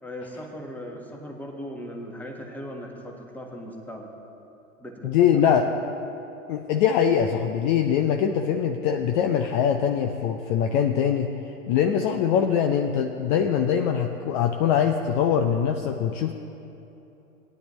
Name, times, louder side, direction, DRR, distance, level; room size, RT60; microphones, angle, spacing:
voice 1, 0.0-4.1 4.8-5.7, equal, 5° left, 0 dB, 1.4 m, -38 dB
voice 2, 5.0-5.7 6.5-11.3 11.7-16.3, left 8 dB, 35° left, 5 dB, 0.6 m, -22 dB
18.5 x 10.5 x 3.2 m, 3.0 s
hypercardioid pair, 110°, 42 cm